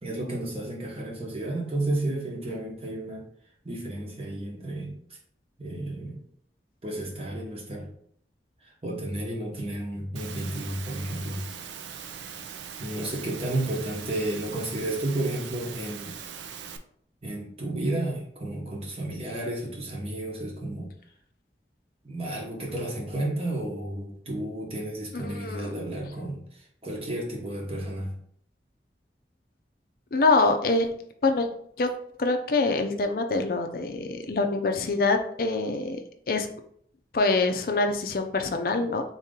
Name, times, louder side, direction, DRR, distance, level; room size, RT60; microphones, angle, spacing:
voice 1, 0.0-3.2 3.6-4.9 5.6-6.2 6.8-7.9 8.6-11.4 12.8-16.1 17.2-20.9 22.0-28.1, right 1 dB, 35° right, -2 dB, 1.0 m, -32 dB
Engine / Mechanisms, 10.2-16.8, right 7 dB, 90° right, 0.4 m, -41 dB
voice 2, 25.1-25.7 30.1-30.9 31.2-31.5 31.8-31.9 32.2-36.0 36.3-36.5 37.1-39.0, left 3 dB, 50° left, 5 dB, 0.5 m, -25 dB
3.9 x 2.9 x 3.7 m, 0.64 s
head